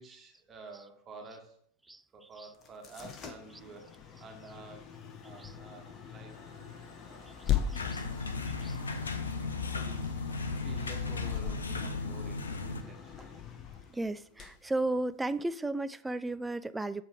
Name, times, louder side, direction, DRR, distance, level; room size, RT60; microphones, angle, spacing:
voice 1, 0.0-1.6 2.1-4.9 5.2-6.5 6.9-8.3 9.7-10.2 10.5-13.4, right 4 dB, 25° right, 1.5 m, -51 dB
sound 1, 2.5-15.5, left 9 dB, 30° left, 1.0 m, -40 dB
Mechanisms, 5.0-5.9 6.2-9.8, left 2 dB, 55° left, 3.3 m, -58 dB
sound 2, 7.7-12.8, left 4 dB, 75° left, 0.7 m, -35 dB
voice 2, 7.7-8.0 8.6-8.8 13.9-17.0, right 2 dB, 5° right, 0.3 m, -34 dB
7.3 x 3.4 x 6.3 m
figure-of-eight pair, 90°, 0 cm